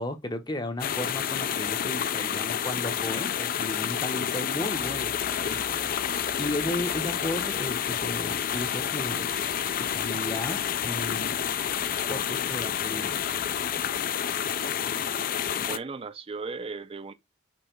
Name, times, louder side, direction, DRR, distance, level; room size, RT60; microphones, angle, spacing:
voice 1, 0.0-9.3 9.8-11.4 12.1-13.2, left 1 dB, 20° left, 0.7 m, -35 dB
sound 1, 0.8-15.8, left 9 dB, 45° left, 0.4 m, -29 dB
sound 2, 4.7-14.1, right 2 dB, 85° right, 0.9 m, -50 dB
voice 2, 15.7-17.1, right 4 dB, 30° right, 0.4 m, -36 dB
5.3 x 3.3 x 3.1 m
head